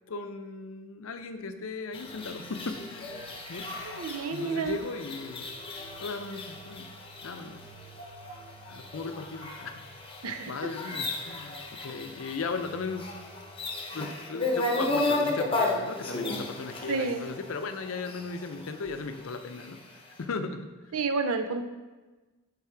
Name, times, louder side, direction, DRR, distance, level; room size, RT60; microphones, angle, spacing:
voice 1, 0.1-3.7 4.3-5.6 6.0-6.9 7.2-7.6 8.7-9.8 10.3-13.1 13.9-20.7, left 4 dB, 70° left, 8 dB, 0.5 m, -37 dB
sound 1, 1.9-19.8, left 2 dB, 25° left, 0.8 m, -35 dB
voice 2, 3.8-4.8 10.2-10.5 16.9-17.2 20.9-21.6, right 4 dB, 85° right, 7 dB, 0.6 m, -30 dB
8.3 x 3.5 x 4.5 m, 1.2 s
head